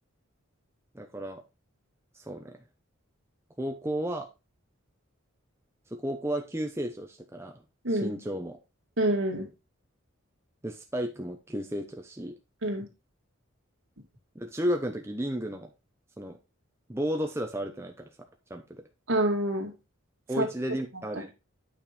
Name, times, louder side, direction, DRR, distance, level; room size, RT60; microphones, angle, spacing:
voice 1, 0.9-1.4 2.1-2.6 3.6-4.3 5.9-7.6 7.9-8.6 10.6-12.4 14.3-15.7 16.2-16.4 16.9-18.1 18.5-18.8 20.3-21.3, equal, 10° right, 3 dB, 0.8 m, -33 dB
voice 2, 9.0-9.5 12.6-12.9 19.1-19.7 20.4-20.5, right 1 dB, 70° right, 2 dB, 2.5 m, -27 dB
8.9 x 5.3 x 4.2 m, 0.27 s
head